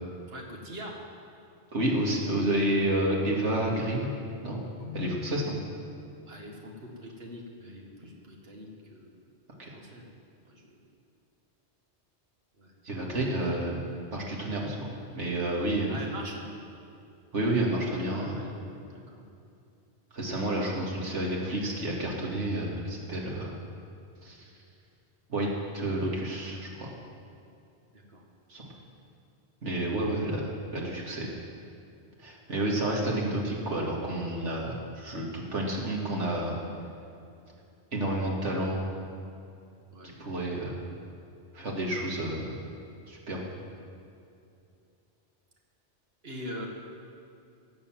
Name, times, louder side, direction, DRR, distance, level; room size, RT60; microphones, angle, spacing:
voice 1, 0.3-1.0 6.3-9.1 9.7-10.1 10.4-10.7 12.6-12.7 15.9-16.4 18.1-18.5 18.9-19.2 27.9-28.2 39.9-40.2 46.2-46.7, equal, 55° right, -1 dB, 2.1 m, -43 dB
voice 2, 1.7-4.1 4.4-4.6 4.9-5.6 9.6-9.7 12.8-16.0 17.3-18.4 20.1-23.6 24.2-24.5 25.3-25.5 25.7-26.9 28.5-28.7 29.6-31.3 32.2-36.6 37.9-38.8 40.2-40.8 41.5-42.5 43.1-43.4, right 1 dB, 85° right, -2 dB, 2.6 m, -30 dB
Keyboard (musical), 4.8-6.7, left 5 dB, 65° left, 1.6 m, -43 dB
17.5 x 7.0 x 7.5 m, 2.5 s
omnidirectional pair, 1.2 m